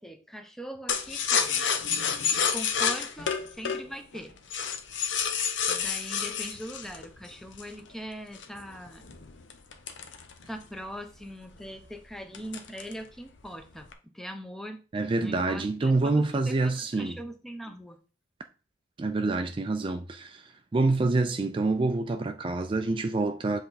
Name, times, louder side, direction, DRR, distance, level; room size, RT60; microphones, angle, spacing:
voice 1, 0.0-1.7 2.4-4.3 5.7-9.0 10.5-14.8 15.2-18.0, equal, ahead, 0.7 m, -41 dB
sound 1, 0.9-7.8 8.3-10.8 11.2-11.3 11.6-11.9 12.3-13.1 13.4-13.9, left 7 dB, 80° left, 0.9 m, -29 dB
voice 2, 14.9-17.2 19.0-23.6, right 3 dB, 30° right, 0.4 m, -27 dB
7.6 x 3.5 x 4.1 m
head